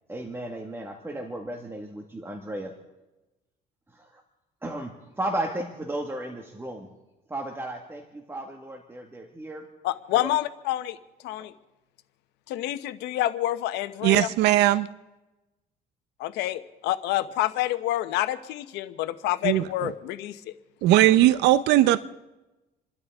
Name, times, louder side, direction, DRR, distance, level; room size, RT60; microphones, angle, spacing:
voice 1, 0.1-2.7 3.9-4.2 4.6-6.9 7.3-9.7 10.1-10.3 11.4-11.5, right 1 dB, 15° right, 1.7 m, -34 dB
voice 2, 9.8-11.0 11.2-11.5 12.5-14.4 16.2-20.5, left 14 dB, 90° left, 0.9 m, -28 dB
voice 3, 14.0-14.9 19.4-19.6 20.8-22.0, right 14 dB, 85° right, 0.6 m, -19 dB
29.0 x 12.5 x 3.6 m
cardioid pair, 110°, 17 cm